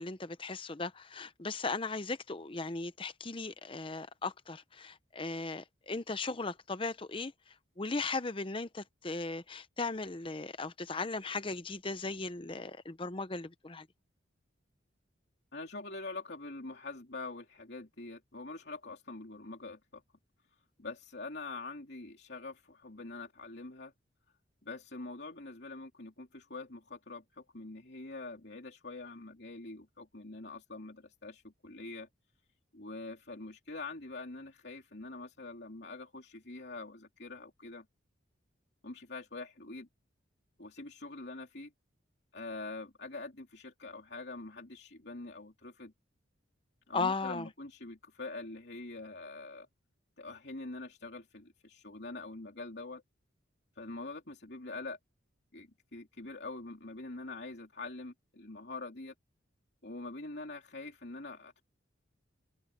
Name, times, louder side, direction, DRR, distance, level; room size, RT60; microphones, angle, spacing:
voice 1, 0.0-7.3 7.8-13.9 46.9-47.5, left 3 dB, 25° left, 0.8 m, -37 dB
voice 2, 15.5-20.0 20.8-23.9 24.6-32.1 32.7-37.8 38.8-39.9 40.6-41.7 42.3-45.9 46.9-49.7 50.2-53.0 53.8-55.0 55.5-59.1 59.8-61.6, left 3 dB, 60° left, 3.2 m, -44 dB
head